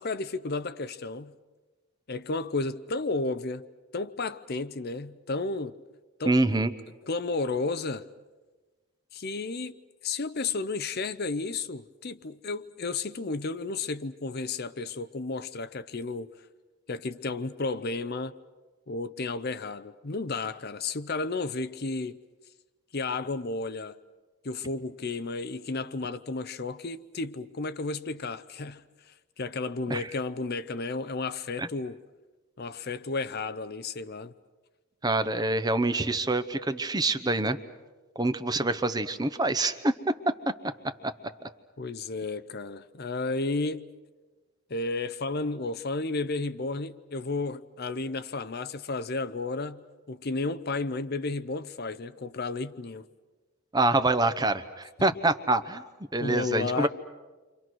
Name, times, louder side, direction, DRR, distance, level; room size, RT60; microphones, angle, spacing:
voice 1, 0.0-1.3 2.1-3.6 3.9-5.8 6.2-6.6 7.0-8.0 9.1-9.7 10.0-16.3 16.9-18.3 18.9-22.2 22.9-24.0 24.4-28.8 29.1-32.0 32.6-34.3 41.8-43.9 44.7-49.8 50.1-53.1 56.2-56.9, left 3 dB, 45° left, 0.7 m, -32 dB
voice 2, 6.3-6.7 29.9-30.1 31.6-31.7 35.0-37.6 38.2-40.1 41.0-41.1 53.7-55.8 56.1-56.9, right 2 dB, 20° right, 0.9 m, -26 dB
29.5 x 25.5 x 6.2 m
head